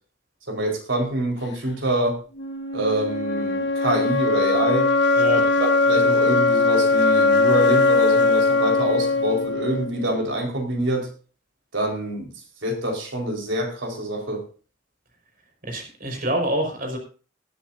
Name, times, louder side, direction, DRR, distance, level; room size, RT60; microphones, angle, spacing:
voice 1, 0.5-2.2 2.7-4.9 5.9-11.1 11.7-12.3 12.6-14.4, right 1 dB, 70° right, 1 dB, 4.5 m, -25 dB
sound 1, 2.4-10.3, left 3 dB, 60° left, 1.6 m, -20 dB
voice 2, 15.6-17.0, equal, 45° right, 3 dB, 5.1 m, -26 dB
20.0 x 10.5 x 2.7 m, 0.37 s
head